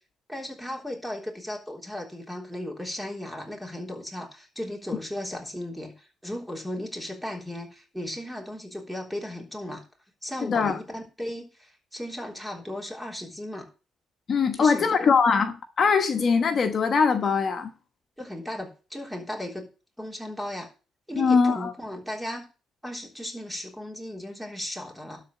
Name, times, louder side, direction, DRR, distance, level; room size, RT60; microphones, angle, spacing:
voice 1, 0.3-9.8 10.2-13.7 14.6-15.2 18.2-19.7 20.0-20.7 21.1-22.5 22.8-25.2, left 1 dB, 5° right, 3.6 m, -36 dB
voice 2, 10.4-10.8 14.3-17.7 21.1-21.7, left 5 dB, 50° left, 1.2 m, -22 dB
12.5 x 4.2 x 8.0 m
cardioid pair, 90°, 0 cm